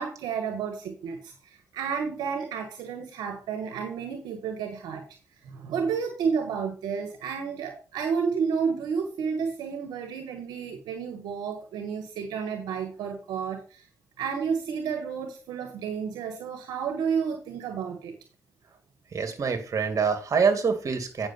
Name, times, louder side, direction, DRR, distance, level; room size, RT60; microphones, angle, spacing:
voice 1, 0.0-5.0 5.4-13.8 14.2-18.1, right 6 dB, 85° right, 5 dB, 1.5 m, -31 dB
voice 2, 19.1-21.3, right 5 dB, 50° right, 7 dB, 2.4 m, -25 dB
9.2 x 6.4 x 4.4 m, 0.35 s
supercardioid pair, 55°, 7 cm